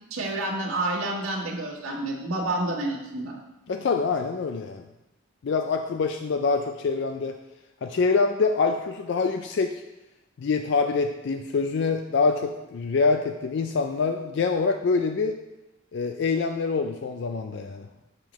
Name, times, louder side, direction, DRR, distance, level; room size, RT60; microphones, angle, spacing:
voice 1, 0.1-3.3, right 2 dB, 90° right, -3 dB, 1.5 m, -29 dB
voice 2, 3.7-4.8 5.4-7.3 7.8-9.8 10.4-15.4 15.9-17.9, left 4 dB, 55° left, 6 dB, 0.3 m, -25 dB
7.2 x 6.7 x 3.1 m, 0.99 s
head